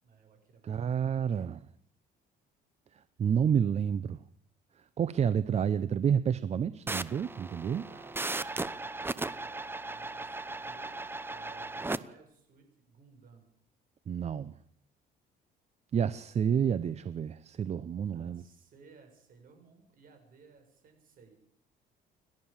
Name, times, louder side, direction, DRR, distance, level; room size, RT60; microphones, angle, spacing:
voice 1, 0.0-1.5 7.6-11.0 11.3-13.5 18.1-21.4, right 4 dB, 55° right, 7.6 m, -58 dB
voice 2, 0.6-1.6 3.2-4.2 5.0-7.8 14.1-14.5 15.9-18.4, right 8 dB, 40° right, 0.8 m, -29 dB
sound 1, 6.9-12.0, right 2 dB, 15° right, 0.9 m, -37 dB
29.5 x 12.0 x 7.4 m
cardioid pair, 110°, 17 cm